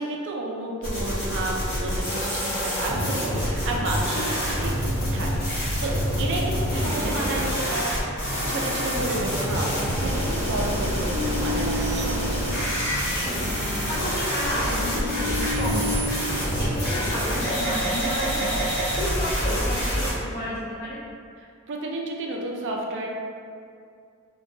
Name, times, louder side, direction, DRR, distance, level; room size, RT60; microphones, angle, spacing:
voice 1, 0.0-4.7 5.1-5.3 5.5-7.9 8.5-12.6 21.4-23.1, right 2 dB, 60° right, 0 dB, 0.4 m, -31 dB
sound 1, 0.8-20.1, equal, 45° left, 1.1 m, -26 dB
sound 2, 3.8-19.3, equal, 85° left, 0.7 m, -39 dB
sound 3, 11.1-13.0 13.5-16.1, left 1 dB, 15° right, 0.6 m, -33 dB
voice 2, 13.9-16.1 16.5-18.7 18.9-21.1, equal, 30° left, -8 dB, 0.3 m, -32 dB
2.5 x 2.2 x 2.6 m, 2.3 s
head